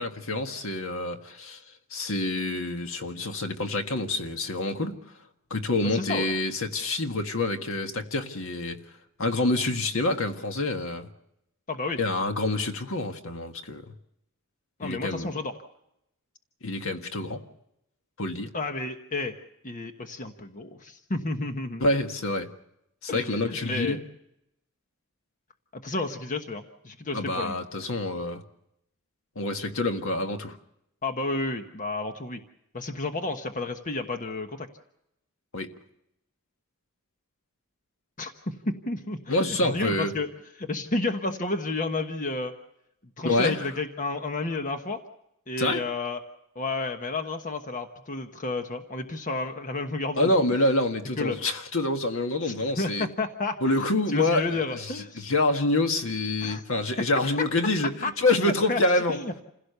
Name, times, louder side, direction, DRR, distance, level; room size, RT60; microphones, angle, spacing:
voice 1, 0.0-1.6 1.9-5.0 5.5-8.8 9.2-11.1 12.0-13.8 14.8-15.3 16.6-17.4 18.2-18.5 21.8-22.5 23.0-24.0 27.1-28.4 29.3-30.6 35.5-35.7 39.3-40.1 43.2-43.6 45.6-45.8 50.2-53.1 53.6-59.2, left 2 dB, 65° left, 6 dB, 1.7 m, -27 dB
voice 2, 5.8-6.3 11.7-12.0 14.8-15.5 18.5-19.4 19.6-21.8 23.1-24.0 25.7-27.6 31.0-32.4 32.7-34.7 38.2-40.3 40.6-42.5 43.2-45.0 45.5-46.2 46.5-50.3 51.2-51.4 52.4-53.8 54.1-55.3 56.4-56.6 58.0-58.1 58.4-59.4, left 3 dB, 35° left, 6 dB, 1.2 m, -31 dB
28.0 x 16.5 x 6.8 m, 0.81 s
head